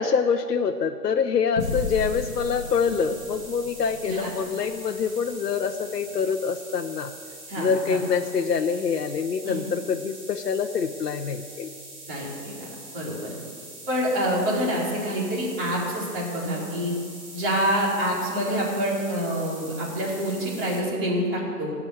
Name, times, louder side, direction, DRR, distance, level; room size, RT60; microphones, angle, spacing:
voice 1, 0.0-7.1 7.6-11.7, left 6 dB, 70° left, 5 dB, 0.9 m, -25 dB
sound 1, 1.5-6.4, left 4 dB, 35° left, 1.4 m, -35 dB
sound 2, 1.6-20.8, right 1 dB, 15° right, 2.0 m, -43 dB
voice 2, 7.5-8.0 9.4-9.6 12.1-13.3 13.9-16.9 17.3-21.7, equal, 35° right, -4 dB, 4.5 m, -27 dB
17.0 x 6.3 x 8.7 m, 2.3 s
figure-of-eight pair, 145°, 49 cm